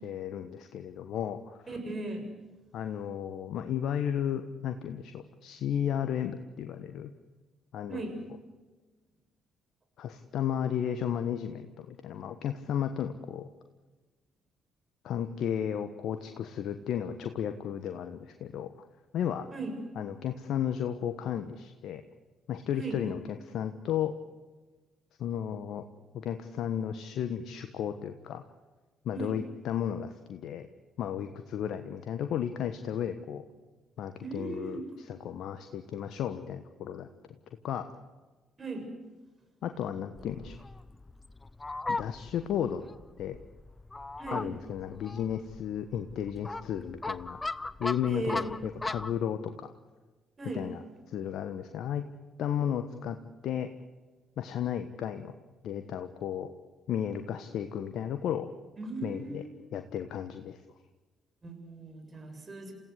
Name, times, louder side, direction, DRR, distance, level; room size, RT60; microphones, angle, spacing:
voice 1, 0.0-1.6 2.7-7.1 7.7-8.0 10.0-13.5 15.0-18.7 19.1-19.5 19.9-22.0 22.5-24.1 25.2-25.8 26.1-28.4 29.0-30.7 31.0-33.4 34.0-34.8 35.1-37.1 37.6-37.9 39.6-40.6 41.9-42.8 43.2-43.4 44.3-47.4 47.8-49.7 50.5-50.8 51.1-52.0 52.4-53.2 53.4-53.7 54.4-55.3 55.6-56.5 56.9-58.5 59.0-59.4 59.7-60.6, left 9 dB, 65° left, 8 dB, 1.2 m, -33 dB
voice 2, 1.7-2.3 7.9-8.2 19.5-19.8 22.8-23.0 29.1-29.4 34.2-34.8 38.6-38.9 44.2-44.4 48.1-48.5 50.4-50.7 58.8-59.5 61.4-62.7, right 2 dB, 35° right, 5 dB, 7.3 m, -37 dB
Fowl, 40.2-49.2, left 3 dB, 25° left, 0.9 m, -38 dB
28.5 x 16.5 x 8.2 m, 1.3 s
hypercardioid pair, 50°, 0 cm